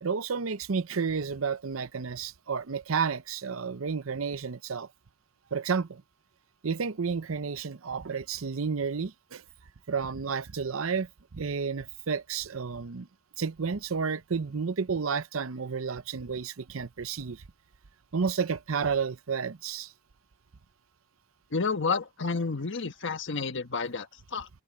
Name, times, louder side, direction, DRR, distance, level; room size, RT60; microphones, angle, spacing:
voice 1, 0.0-4.9 5.5-6.0 6.6-9.4 9.9-11.1 11.3-13.1 13.4-17.4 18.1-19.9, right 5 dB, 75° right, 0.7 m, -31 dB
voice 2, 21.5-24.5, left 4 dB, 60° left, 1.4 m, -30 dB
open air
head